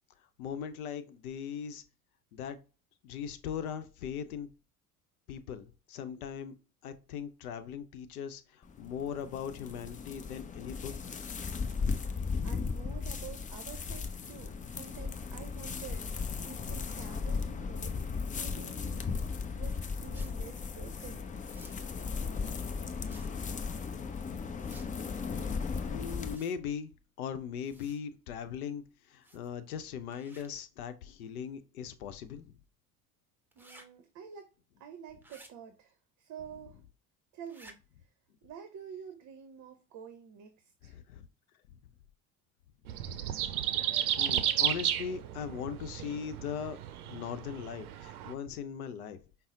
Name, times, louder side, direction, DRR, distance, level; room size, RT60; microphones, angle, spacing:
voice 1, 0.4-1.8 2.3-2.6 3.0-4.5 5.3-6.5 6.8-11.2 25.9-26.9 27.2-32.5 40.8-41.3 42.9-43.3 44.1-46.8 47.0-49.2, left 7 dB, 80° left, 0.7 m, -39 dB
sound 1, 8.6-26.4, left 5 dB, 20° left, 0.5 m, -36 dB
voice 2, 12.0-19.2 19.5-21.3 33.5-34.5 34.8-36.8 37.3-38.1 38.4-41.0, right 7 dB, 40° right, 0.7 m, -49 dB
sound 2, 20.1-20.3 21.4-21.8 23.0-23.3 24.6-24.9 26.2-26.6 27.6-28.0 29.2-29.5 30.1-30.5 33.5-33.8 35.2-35.5 37.5-37.7, right 1 dB, 5° right, 1.0 m, -55 dB
sound 3, 42.9-48.3, right 11 dB, 85° right, 0.5 m, -33 dB
5.4 x 2.0 x 3.6 m
hypercardioid pair, 70°, 43 cm